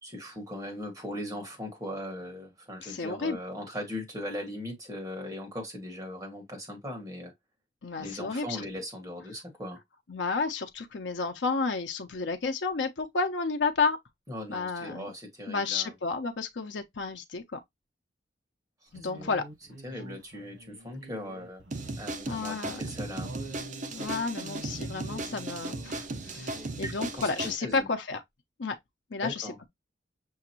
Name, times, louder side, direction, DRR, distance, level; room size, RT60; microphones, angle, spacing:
voice 1, 0.0-7.3 8.0-9.8 14.3-15.9 19.1-19.3 19.8-21.6 22.0-23.3 26.8-27.3 27.6-27.9 29.2-29.6, left 1 dB, 20° right, 1.9 m, -39 dB
voice 2, 2.8-3.4 7.8-8.6 10.1-14.0 14.5-15.1 15.5-17.6 18.9-19.4 22.3-22.8 23.9-28.2 28.6-28.8 29.1-29.7, left 4 dB, 85° left, 0.7 m, -31 dB
sound 1, 18.9-22.3 22.5-22.6 23.2-26.0 26.3-26.7, right 1 dB, 85° right, 1.5 m, -46 dB
sound 2, 21.7-27.6, right 2 dB, 45° right, 0.7 m, -37 dB
6.3 x 2.5 x 2.9 m
head